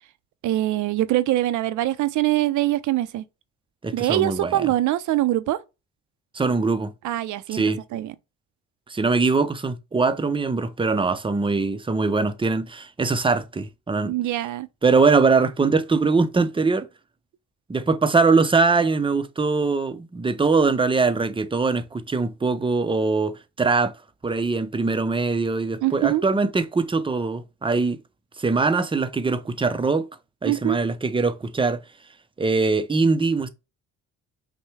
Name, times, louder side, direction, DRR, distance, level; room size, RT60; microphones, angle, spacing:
voice 1, 0.4-3.2 3.9-5.6 7.0-7.6 7.9-8.1 14.1-14.7 25.8-26.2 30.4-30.8, right 15 dB, 75° right, 0.5 m, -23 dB
voice 2, 3.8-4.7 6.3-6.9 7.5-7.8 8.9-14.1 14.8-16.9 17.7-23.9 24.2-28.0 28.4-30.1 30.4-31.8 32.4-33.5, right 4 dB, 15° right, 0.5 m, -22 dB
5.5 x 2.2 x 3.1 m
cardioid pair, 90°, 30 cm